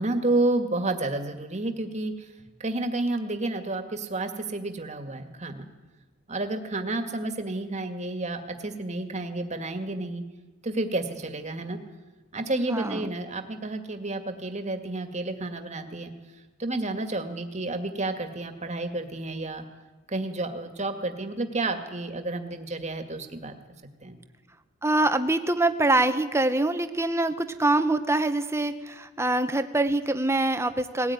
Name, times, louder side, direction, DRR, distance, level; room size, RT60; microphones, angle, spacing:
voice 1, 0.0-2.1 2.6-5.7 6.3-10.2 10.6-11.8 12.3-16.1 16.6-19.6 20.1-23.5 24.0-24.2, right 2 dB, 35° right, 7 dB, 2.1 m, -30 dB
voice 2, 12.7-13.1 24.8-31.1, right 2 dB, 15° right, 9 dB, 1.2 m, -24 dB
20.0 x 18.0 x 9.7 m, 1.2 s
head